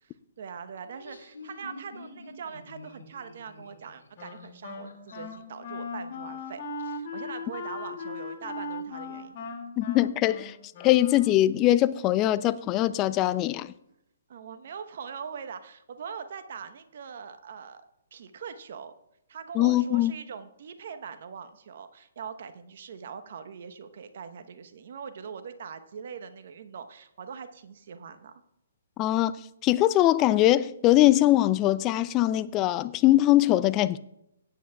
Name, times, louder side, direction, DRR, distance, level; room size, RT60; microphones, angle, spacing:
voice 1, 0.0-9.3 14.3-17.8 18.1-18.9 19.3-28.3, right 6 dB, 55° right, 1.0 m, -42 dB
Laughter, 0.8-5.4, left 2 dB, 85° left, 2.5 m, -47 dB
Wind instrument woodwind instrument, 4.2-11.6, left 3 dB, 45° left, 2.5 m, -38 dB
voice 2, 9.8-10.5 10.8-13.7 19.6-20.1 29.0-29.3 29.6-34.0, left 15 dB, 25° left, 0.4 m, -22 dB
17.5 x 8.8 x 2.3 m
hypercardioid pair, 135°, 0 cm